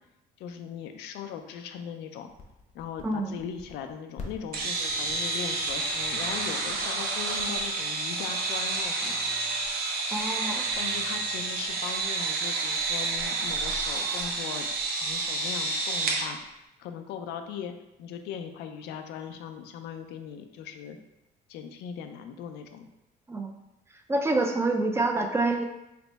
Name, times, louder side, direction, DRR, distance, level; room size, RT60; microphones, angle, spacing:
voice 1, 0.4-2.3 2.7-9.2 10.7-14.7 15.0-21.0 21.5-22.9, left 7 dB, 85° left, 6 dB, 0.4 m, -39 dB
sound 1, 2.3-7.5, left 4 dB, 45° left, 0.7 m, -45 dB
voice 2, 3.0-3.3 10.1-10.6 23.3-23.5 24.1-25.6, right 2 dB, 15° right, 4 dB, 0.3 m, -27 dB
sound 2, 4.5-16.3, right 3 dB, 60° right, 0.7 m, -29 dB
3.3 x 2.0 x 3.9 m, 0.90 s
cardioid pair, 110°, 17 cm